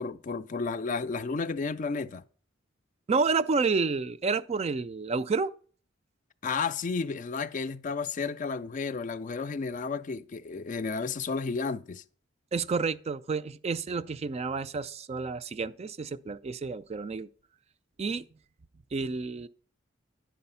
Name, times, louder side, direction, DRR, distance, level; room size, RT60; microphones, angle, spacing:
voice 1, 0.0-2.2 6.4-12.0, left 4 dB, 40° left, 0.4 m, -32 dB
voice 2, 3.1-5.5 12.5-17.3 18.0-18.2 18.9-19.5, right 4 dB, 35° right, 0.4 m, -30 dB
10.5 x 4.8 x 5.5 m
head